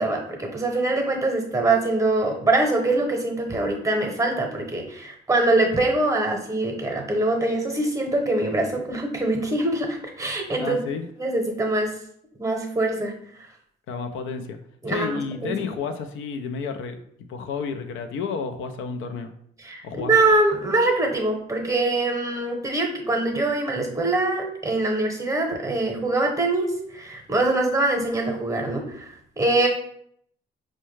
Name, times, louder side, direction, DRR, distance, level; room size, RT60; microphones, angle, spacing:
voice 1, 0.0-10.8 11.2-11.9 12.4-13.1 14.8-15.6 19.6-29.7, right 2 dB, 15° right, 2 dB, 0.8 m, -23 dB
voice 2, 10.6-11.1 13.9-14.6 14.9-17.0 17.3-19.3 19.8-20.1, left 5 dB, 80° left, 7 dB, 0.4 m, -31 dB
4.5 x 2.1 x 3.1 m, 0.68 s
cardioid pair, 90°, 20 cm